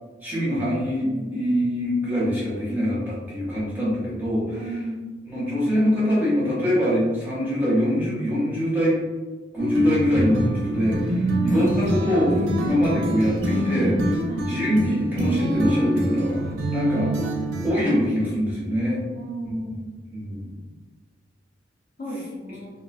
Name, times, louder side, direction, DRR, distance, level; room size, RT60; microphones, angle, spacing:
voice 1, 0.2-4.6 5.3-9.0 9.5-14.2 14.5-16.4 16.7-17.1 17.6-19.0 20.1-20.5, equal, 10° right, -8 dB, 0.7 m, -24 dB
voice 2, 4.5-5.0 11.5-11.6 14.3-14.5 19.1-19.8 22.0-22.7, right 1 dB, 50° left, -5 dB, 0.6 m, -34 dB
sound 1, 9.6-17.7, right 1 dB, 80° right, 0.5 m, -25 dB
2.3 x 2.1 x 2.5 m, 1.3 s
head